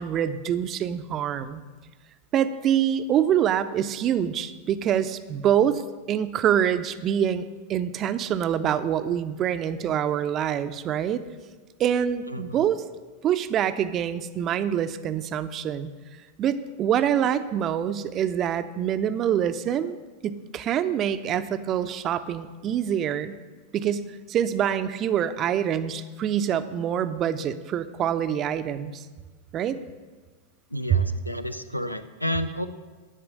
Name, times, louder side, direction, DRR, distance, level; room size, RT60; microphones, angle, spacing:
voice 1, 0.0-1.6 2.3-5.8 6.1-7.4 7.7-11.2 11.8-12.8 13.2-15.9 16.4-20.0 20.2-23.3 23.7-29.0 29.5-29.8, right 9 dB, 30° right, 12 dB, 0.4 m, -25 dB
voice 2, 12.3-12.7 30.7-32.7, left 1 dB, 90° left, 11 dB, 0.4 m, -31 dB
9.9 x 4.4 x 6.3 m, 1.3 s
figure-of-eight pair, 90°, 0 cm